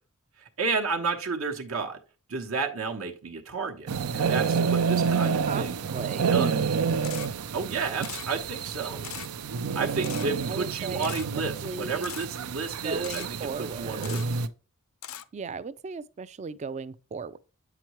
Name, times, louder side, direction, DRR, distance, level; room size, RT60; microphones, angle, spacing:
voice 1, 0.6-2.0 2.3-5.8 6.3-6.5 7.5-9.0 9.7-14.2, right 4 dB, 65° right, 0.9 m, -31 dB
sound 1, 3.9-14.5, right 6 dB, 85° right, 0.5 m, -29 dB
voice 2, 5.2-6.8 10.5-11.1 11.6-12.1 12.8-14.2 15.3-17.4, right 5 dB, 30° right, 0.3 m, -36 dB
Camera, 7.0-7.3 8.0-8.3 9.0-9.3 10.0-10.3 11.0-11.3 12.0-12.3 13.0-13.3 14.0-14.3 15.0-15.2, left 12 dB, 65° left, 0.4 m, -39 dB
8.0 x 5.9 x 3.0 m
head